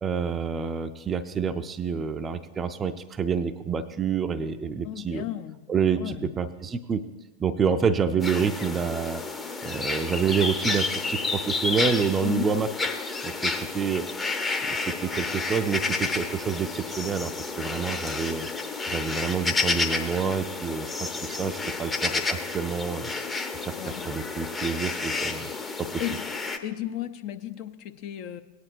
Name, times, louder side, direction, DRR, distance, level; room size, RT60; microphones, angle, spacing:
voice 1, 0.0-5.2 5.7-7.1 7.4-9.2 9.6-12.7 13.2-18.5 18.9-23.1 23.6-23.8 24.0-25.5 25.8-25.9, right 6 dB, 20° right, 11 dB, 0.5 m, -28 dB
voice 2, 4.8-6.3 12.2-12.6 23.8-24.1 24.8-24.9 26.0-26.2 26.6-28.4, left 12 dB, 45° left, 9 dB, 0.6 m, -34 dB
sound 1, 8.2-26.6, left 3 dB, 15° left, 0.8 m, -30 dB
17.5 x 9.7 x 2.6 m, 1.1 s
figure-of-eight pair, 90°, 0 cm